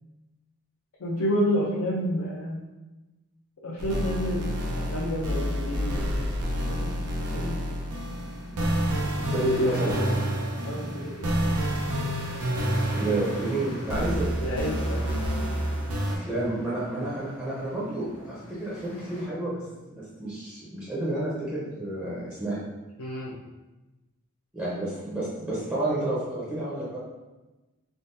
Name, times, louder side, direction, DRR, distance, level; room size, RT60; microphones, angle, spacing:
voice 1, 1.0-2.6 3.6-4.5 4.7-8.0 9.8-11.5 14.4-15.2 23.0-23.4, equal, 75° left, -4 dB, 0.5 m, -31 dB
sound 1, 3.8-16.2, equal, 85° right, 0.5 m, -29 dB
sound 2, 5.7-19.2, equal, 40° left, 0.7 m, -42 dB
voice 2, 9.3-10.0 12.9-14.6 16.1-19.6 19.9-22.6 24.5-27.0, right 1 dB, 10° right, -8 dB, 0.6 m, -30 dB
3.7 x 2.2 x 2.5 m, 1.1 s
head